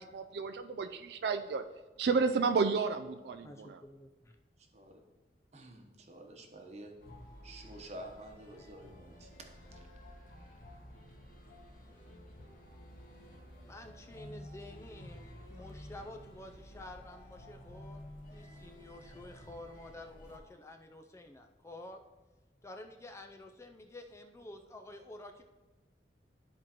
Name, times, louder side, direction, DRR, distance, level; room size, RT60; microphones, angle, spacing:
voice 1, 0.0-1.6 2.0-3.8, right 4 dB, 65° right, 8 dB, 0.3 m, -31 dB
voice 2, 3.4-4.4 13.6-18.0 18.3-22.0 22.6-25.4, left 1 dB, 15° left, 4 dB, 0.4 m, -50 dB
voice 3, 4.6-5.0 5.5-6.9 7.4-9.4 9.7-9.8, right 1 dB, 40° right, 3 dB, 1.0 m, -49 dB
sound 1, 7.0-20.4, left 1 dB, 55° left, 1.5 m, -52 dB
13.0 x 4.5 x 3.0 m, 1.2 s
head